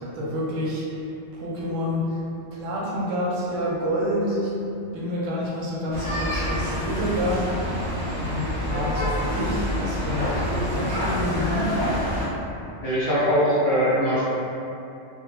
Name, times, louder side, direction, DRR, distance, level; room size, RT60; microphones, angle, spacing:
voice 1, 0.0-1.1 1.3-2.2 2.5-4.5 4.8-7.7 8.2-11.8, equal, 85° right, -5 dB, 1.0 m, -28 dB
sound 1, 5.9-12.3, equal, 25° right, 0.7 m, -27 dB
voice 2, 12.8-14.2, equal, 55° left, -10 dB, 0.6 m, -21 dB
2.2 x 2.1 x 2.9 m, 2.7 s
omnidirectional pair, 1.3 m